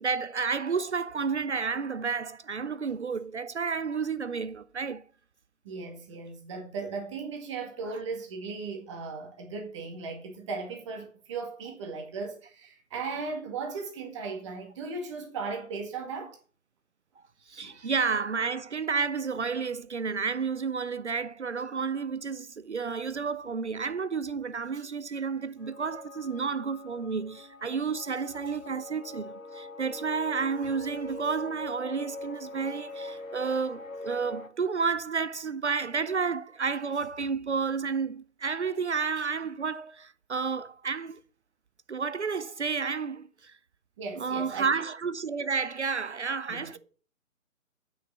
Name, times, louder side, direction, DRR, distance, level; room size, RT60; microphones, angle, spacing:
voice 1, 0.0-5.0 17.5-41.2 41.9-43.6 44.2-46.8, right 5 dB, 55° right, 0.7 m, -31 dB
voice 2, 5.6-16.4 17.6-17.9 44.0-44.8 46.5-46.8, right 4 dB, 20° right, 2.0 m, -37 dB
sound 1, 25.6-34.5, left 2 dB, 75° left, 1.7 m, -42 dB
8.9 x 6.5 x 6.7 m
figure-of-eight pair, 145°, 41 cm